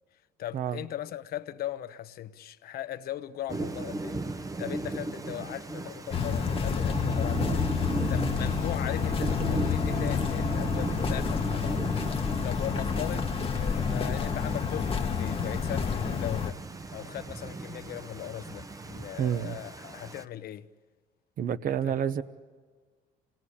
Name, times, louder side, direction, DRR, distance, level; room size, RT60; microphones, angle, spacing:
voice 1, 0.4-4.3 4.6-7.6 8.1-11.9 12.4-13.3 13.6-16.6 16.9-20.7 21.8-22.0, left 12 dB, 65° left, 1.0 m, -38 dB
Thunder / Rain, 3.5-20.2, right 3 dB, 20° right, 0.8 m, -36 dB
sound 1, 6.1-16.5, left 6 dB, 35° left, 1.3 m, -29 dB
voice 2, 19.2-19.6 21.4-22.2, right 9 dB, 55° right, 1.0 m, -29 dB
27.5 x 19.5 x 10.0 m
cardioid pair, 110°, 17 cm